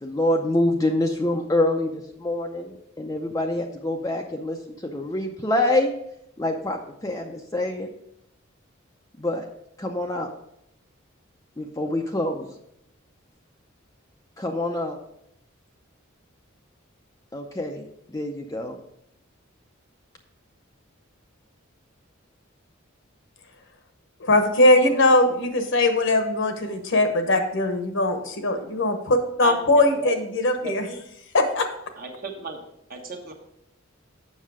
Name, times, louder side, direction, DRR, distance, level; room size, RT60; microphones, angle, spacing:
voice 1, 0.0-4.6 4.8-5.9 6.4-7.9 9.2-9.5 9.8-10.3 11.6-12.5 14.4-15.0 17.3-17.8 18.1-18.8, left 1 dB, 15° left, 1 dB, 0.6 m, -26 dB
voice 2, 24.2-31.0 31.3-31.7, left 2 dB, 65° left, 7 dB, 1.1 m, -20 dB
voice 3, 29.4-30.1 30.6-30.7 32.0-32.6 32.9-33.3, right 4 dB, 45° right, 2 dB, 1.3 m, -34 dB
7.5 x 6.3 x 4.8 m, 0.77 s
head